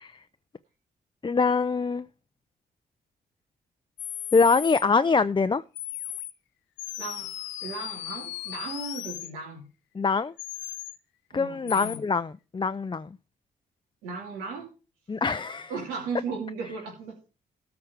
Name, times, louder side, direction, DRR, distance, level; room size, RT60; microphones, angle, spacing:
voice 1, 1.2-2.1 4.3-5.6 9.9-10.3 11.3-13.1 15.1-15.7, left 4 dB, 25° left, 0.6 m, -24 dB
sound 1, 4.0-4.8 5.8-6.3 6.8-9.3 10.4-11.0 11.7-12.0, left 14 dB, 85° left, 0.8 m, -36 dB
voice 2, 7.0-7.3 7.6-9.7 11.3-12.0 14.0-14.7 15.7-17.2, right 4 dB, 85° right, 2.7 m, -36 dB
13.5 x 4.8 x 7.4 m
hypercardioid pair, 45°, 19 cm